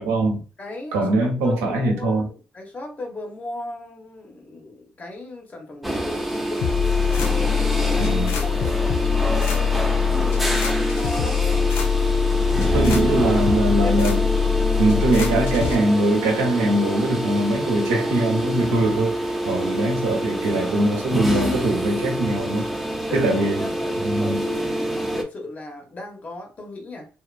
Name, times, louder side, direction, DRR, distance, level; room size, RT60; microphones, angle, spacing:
voice 1, 0.0-0.4 0.9-2.3 8.0-8.4 12.7-14.2 14.8-22.7 23.1-23.7 24.0-24.4, right 1 dB, 85° right, 0.7 m, -22 dB
voice 2, 0.6-1.1 1.4-7.5 7.8-11.7 13.8-14.0 23.1-23.9 24.2-27.1, left 2 dB, 40° left, 1.1 m, -36 dB
sound 1, 5.8-25.2, right 1 dB, ahead, 0.7 m, -26 dB
sound 2, 6.6-15.8, left 7 dB, 80° left, 0.4 m, -23 dB
2.8 x 2.4 x 2.3 m
hypercardioid pair, 50°, 4 cm